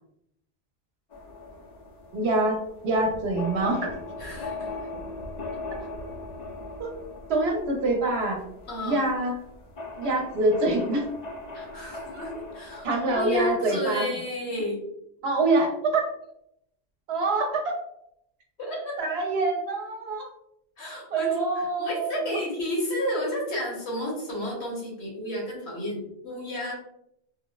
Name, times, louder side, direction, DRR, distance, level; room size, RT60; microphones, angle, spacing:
sound 1, 1.1-13.6, left 2 dB, 50° left, 0.6 m, -39 dB
voice 1, 2.1-2.6 2.8-3.9 6.8-6.9 7.3-8.4 8.8-9.3 10.0-11.1 12.1-12.2 12.8-14.1 15.2-16.1 17.1-17.8 19.0-20.3 21.1-22.4, right 2 dB, 70° right, 1 dB, 0.9 m, -25 dB
voice 2, 4.2-4.7 8.7-9.0 11.5-14.8 18.6-19.0 20.8-26.7, left 1 dB, 70° left, -4 dB, 1.4 m, -32 dB
3.9 x 2.0 x 2.2 m, 0.77 s
omnidirectional pair, 1.1 m